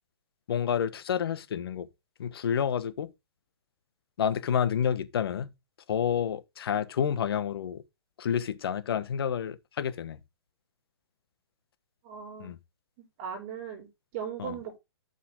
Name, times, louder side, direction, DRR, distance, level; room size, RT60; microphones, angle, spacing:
voice 1, 0.5-1.9 2.2-3.1 4.2-5.5 5.9-7.8 8.2-10.2 12.4-12.6 14.4-14.6, left 8 dB, 60° left, 1.2 m, -29 dB
voice 2, 12.0-12.5 13.2-14.8, right 7 dB, 35° right, 3.4 m, -38 dB
11.5 x 5.6 x 3.6 m
hypercardioid pair, 155°, 14 cm